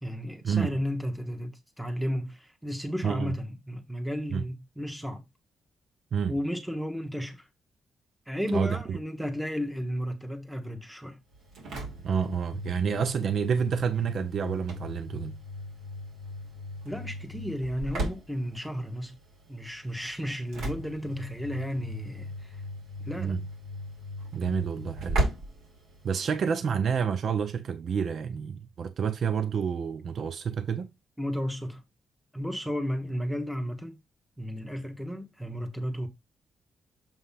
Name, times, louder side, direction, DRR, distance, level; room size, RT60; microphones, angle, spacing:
voice 1, 0.0-5.2 6.3-7.5 8.3-11.2 16.8-19.2 19.5-22.6 23.0-23.4 31.2-31.8 32.3-34.0 34.4-36.1, equal, ahead, 1.4 m, -33 dB
voice 2, 8.5-9.0 12.0-15.4 23.2-23.4 24.3-25.2 26.0-30.9, right 7 dB, 60° right, 0.7 m, -29 dB
Engine / Slam, 11.3-26.5, right 1 dB, 80° right, 2.8 m, -37 dB
7.2 x 3.0 x 5.7 m
cardioid pair, 90°, 0 cm